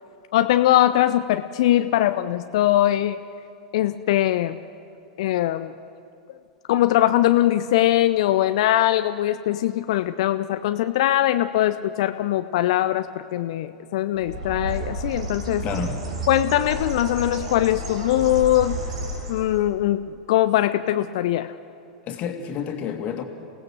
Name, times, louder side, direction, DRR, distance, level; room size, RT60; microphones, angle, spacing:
voice 1, 0.3-3.2 3.7-4.6 5.2-5.7 6.7-15.6 16.3-18.8 19.3-21.5, left 13 dB, 55° left, 11 dB, 0.6 m, -21 dB
Bird, 14.1-19.7, right 2 dB, 70° right, 4.4 m, -31 dB
voice 2, 15.6-16.1 22.0-23.2, left 7 dB, 35° left, 4 dB, 2.3 m, -29 dB
28.5 x 17.0 x 6.4 m, 2.5 s
figure-of-eight pair, 90°, 4 cm